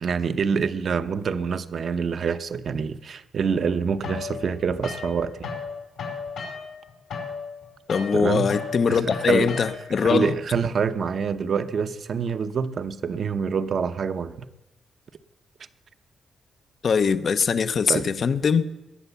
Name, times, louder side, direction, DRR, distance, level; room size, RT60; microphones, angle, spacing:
voice 1, 0.0-5.5 8.1-8.5 8.9-9.5 10.0-14.5 17.9-18.0, right 6 dB, 60° right, 0.8 m, -26 dB
sound 1, 4.0-5.7 6.0-10.0, left 5 dB, 85° left, 4.8 m, -35 dB
voice 2, 7.9-10.3 16.8-18.7, left 6 dB, 55° left, 0.7 m, -22 dB
20.5 x 8.1 x 7.0 m
cardioid pair, 75°, 0 cm